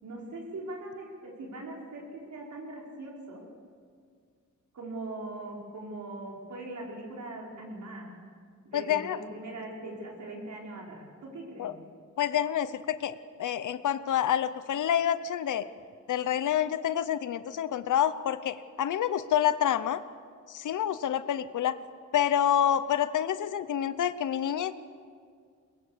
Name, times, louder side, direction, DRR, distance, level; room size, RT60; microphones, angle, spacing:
voice 1, 0.0-3.4 4.7-8.2 8.7-11.8, right 2 dB, 75° right, -2 dB, 5.2 m, -41 dB
voice 2, 8.7-9.2 11.6-11.7 12.2-15.7 16.1-20.0 20.5-21.7 22.1-24.7, left 10 dB, 90° left, 13 dB, 0.8 m, -28 dB
23.0 x 21.5 x 6.8 m, 2.1 s
wide cardioid pair, 110°, 30 cm